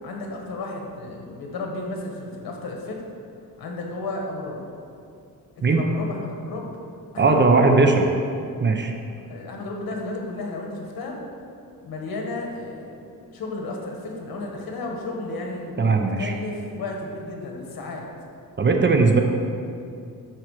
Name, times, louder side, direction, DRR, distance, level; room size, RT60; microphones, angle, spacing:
voice 1, 0.0-3.0 3.6-4.6 5.7-6.7 7.1-7.6 9.2-11.2 11.8-18.0, left 2 dB, 85° left, 0 dB, 1.6 m, -33 dB
voice 2, 7.2-8.1 8.6-8.9 15.8-16.3 18.6-19.2, right 3 dB, 30° right, 4 dB, 0.8 m, -18 dB
12.5 x 4.5 x 4.9 m, 2.5 s
cardioid pair, 125°, 36 cm